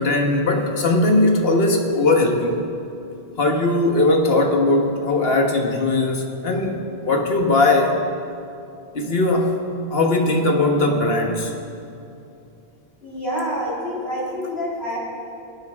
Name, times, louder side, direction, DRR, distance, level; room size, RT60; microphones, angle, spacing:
voice 1, 0.0-2.7 3.4-8.0 8.9-9.6 9.9-11.5, left 2 dB, 70° left, 2 dB, 1.5 m, -19 dB
voice 2, 13.0-15.0, equal, 90° left, -7 dB, 3.8 m, -27 dB
23.5 x 8.6 x 3.5 m, 2.7 s
omnidirectional pair, 1.0 m